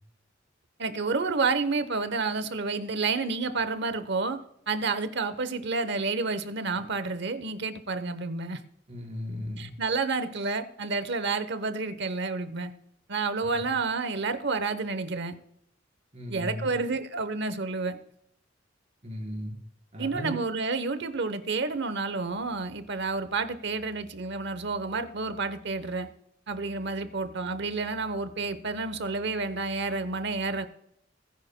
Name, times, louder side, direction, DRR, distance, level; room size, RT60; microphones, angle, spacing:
voice 1, 0.8-4.4 4.7-8.6 9.6-12.7 13.1-15.3 16.3-18.0 20.0-26.1 26.5-30.7, right 4 dB, 65° right, 12 dB, 0.9 m, -30 dB
voice 2, 8.9-9.7 13.5-13.6 16.1-16.7 19.0-19.5 19.9-20.4, left 1 dB, 35° right, -1 dB, 3.9 m, -36 dB
19.5 x 10.5 x 2.2 m, 0.76 s
head